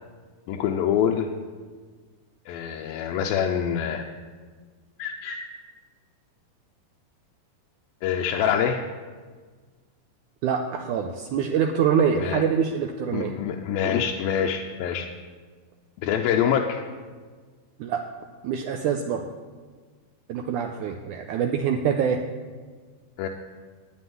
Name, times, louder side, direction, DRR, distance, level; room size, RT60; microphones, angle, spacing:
voice 1, 0.5-1.3 2.5-4.1 5.0-5.4 8.0-8.9 12.2-12.4 13.1-15.1 16.0-16.9 23.2-23.3, left 8 dB, 80° left, 2 dB, 2.5 m, -25 dB
voice 2, 10.4-13.3 17.8-18.0 18.4-19.2 20.3-22.2, right 7 dB, 80° right, 4 dB, 1.8 m, -25 dB
9.7 x 9.0 x 9.4 m, 1.5 s
omnidirectional pair, 4.2 m